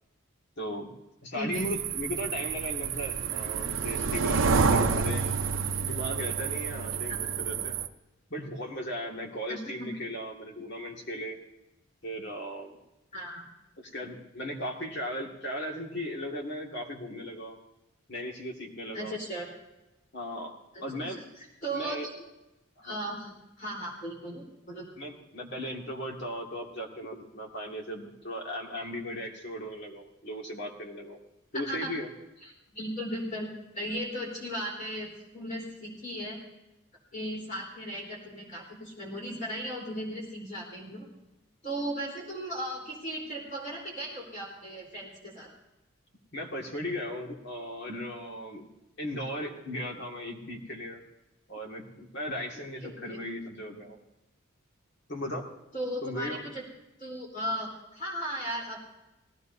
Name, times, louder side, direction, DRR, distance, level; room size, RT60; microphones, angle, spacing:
voice 1, 0.6-0.9 1.2-5.3 5.8-7.8 8.3-11.4 12.0-12.8 13.8-17.6 18.1-19.1 20.1-20.5 20.8-21.3 21.7-22.1 22.8-23.0 25.0-31.2 31.5-32.1 46.3-48.7 49.0-51.0 51.5-54.0 55.1-55.4 56.0-56.4, equal, 55° left, 0 dB, 2.1 m, -37 dB
voice 2, 1.3-1.6 9.5-9.9 13.1-13.5 18.9-19.5 20.7-21.1 21.6-22.2 22.8-24.9 31.5-31.9 32.4-33.5 33.7-36.4 37.1-41.1 41.6-45.5 52.8-53.2 55.7-56.6 57.0-58.8, equal, 35° left, -3 dB, 3.8 m, -36 dB
sound 1, 1.5-7.9, right 5 dB, 70° right, 0.7 m, -29 dB
19.5 x 16.0 x 2.7 m, 0.96 s
head